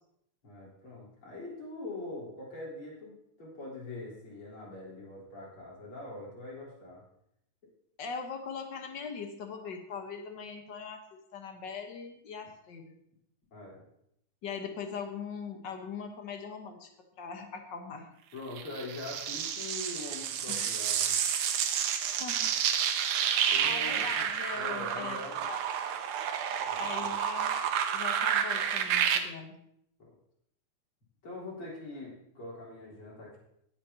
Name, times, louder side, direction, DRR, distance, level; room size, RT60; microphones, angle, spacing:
voice 1, 0.4-7.0 13.5-13.8 18.3-21.1 23.5-24.3 24.5-25.5 26.6-27.2 31.2-33.4, left 2 dB, 40° left, -5 dB, 4.6 m, -43 dB
voice 2, 8.0-13.0 14.4-16.9 17.2-18.1 20.5-20.7 22.2-22.5 23.4-25.6 26.8-27.6 27.9-29.6, left 5 dB, 55° left, 4 dB, 1.2 m, -41 dB
sound 1, 18.6-29.2, right 8 dB, 75° right, 2.3 m, -30 dB
18.0 x 8.5 x 2.9 m, 0.74 s
omnidirectional pair, 3.6 m